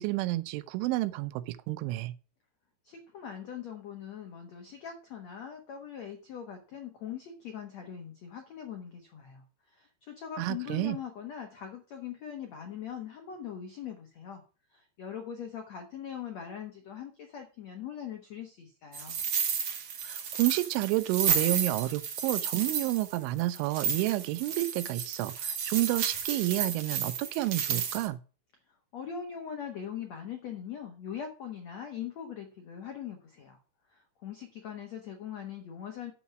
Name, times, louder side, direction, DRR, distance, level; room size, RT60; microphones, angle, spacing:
voice 1, 0.0-2.1 10.4-11.0 20.0-28.2, right 18 dB, 85° right, 3.1 m, -30 dB
voice 2, 2.8-14.4 14.7-19.2 28.9-33.6 33.9-36.1, left 8 dB, 90° left, 1.5 m, -41 dB
sound 1, 18.9-28.1, right 7 dB, 65° right, 1.6 m, -32 dB
9.1 x 7.2 x 6.0 m
omnidirectional pair, 5.5 m